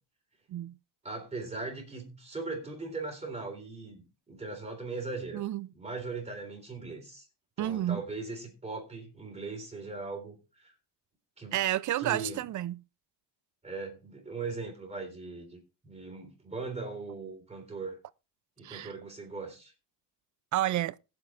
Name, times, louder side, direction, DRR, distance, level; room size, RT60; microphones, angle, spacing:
voice 1, 1.0-5.4 5.7-7.3 7.6-10.7 11.4-11.6 11.9-12.4 13.6-18.0 18.6-19.7, right 3 dB, 15° right, 3.7 m, -39 dB
voice 2, 5.3-5.7 7.6-8.0 11.5-12.8 18.6-18.9 20.5-21.0, right 13 dB, 45° right, 0.5 m, -30 dB
21.5 x 7.7 x 2.5 m
cardioid pair, 125°, 42 cm